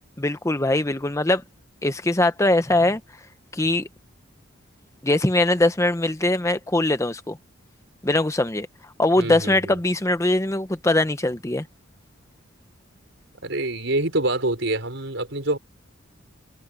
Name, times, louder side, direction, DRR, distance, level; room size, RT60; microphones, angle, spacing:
voice 1, 0.2-1.4 1.8-3.0 3.5-3.9 5.0-7.4 8.0-8.7 9.0-11.6, left 1 dB, 15° left, 0.7 m, -21 dB
voice 2, 9.2-9.8 13.4-15.6, right 2 dB, 65° right, 5.2 m, -26 dB
head